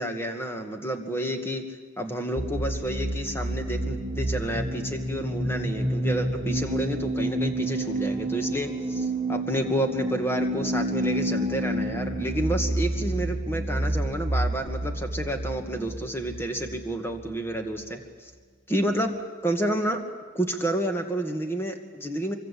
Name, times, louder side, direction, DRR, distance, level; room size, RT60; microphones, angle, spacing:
voice 1, 0.0-1.6 2.0-18.3 18.7-19.2 19.4-20.0 20.3-22.3, right 1 dB, 10° left, 5 dB, 2.0 m, -30 dB
sound 1, 2.4-17.9, right 1 dB, 30° right, 1.7 m, -29 dB
25.0 x 24.0 x 8.6 m, 1.5 s
head